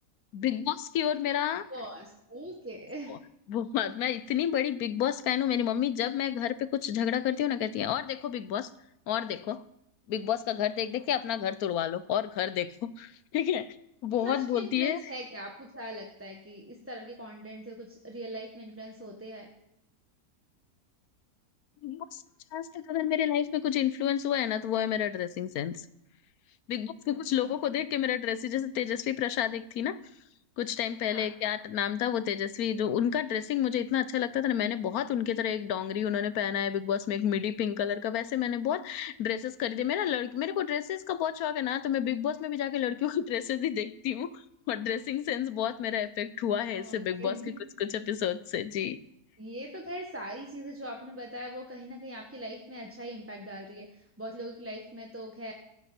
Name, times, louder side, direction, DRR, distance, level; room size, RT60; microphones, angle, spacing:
voice 1, 0.3-1.7 3.1-3.2 3.5-8.7 9.1-9.6 10.1-13.8 14.0-15.0 21.8-22.2 22.5-25.8 26.7-30.0 30.6-47.4 47.8-49.0, left 10 dB, 75° left, 15 dB, 1.2 m, -30 dB
voice 2, 1.7-3.2 14.2-19.5 27.1-27.5 31.1-31.3 46.7-47.5 49.4-55.5, equal, 10° right, 0 dB, 1.2 m, -41 dB
16.0 x 15.5 x 4.4 m, 0.79 s
omnidirectional pair, 1.6 m